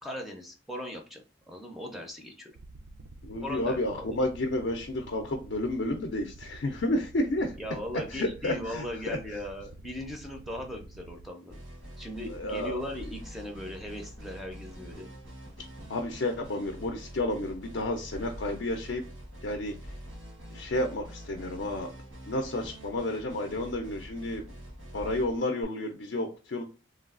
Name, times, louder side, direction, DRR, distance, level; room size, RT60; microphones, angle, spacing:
voice 1, 0.0-2.5 3.4-4.2 7.6-11.6 12.0-15.1, left 1 dB, ahead, 1 dB, 0.5 m, -38 dB
sound 1, 2.5-11.3, right 2 dB, 70° right, 0.5 m, -49 dB
voice 2, 3.2-7.5 8.1-9.2 12.3-12.8 15.9-19.0 19.4-19.7 20.5-21.9 22.3-24.4 24.9-26.6, left 1 dB, 60° left, 3 dB, 0.5 m, -31 dB
sound 2, 11.5-25.6, equal, 90° right, 1.4 m, -45 dB
3.3 x 2.3 x 2.4 m, 0.33 s
head